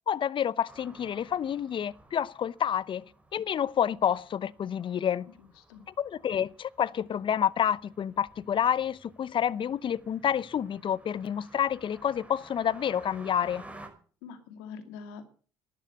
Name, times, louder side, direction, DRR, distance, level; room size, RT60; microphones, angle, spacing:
voice 1, 0.1-3.1 3.3-5.3 6.0-13.6, left 9 dB, 45° left, 0.8 m, -29 dB
sound 1, 0.7-13.9, right 2 dB, 10° right, 5.4 m, -54 dB
voice 2, 5.4-5.8 14.2-15.3, left 6 dB, 85° left, 2.4 m, -44 dB
12.0 x 11.5 x 8.3 m
hypercardioid pair, 65°, 12 cm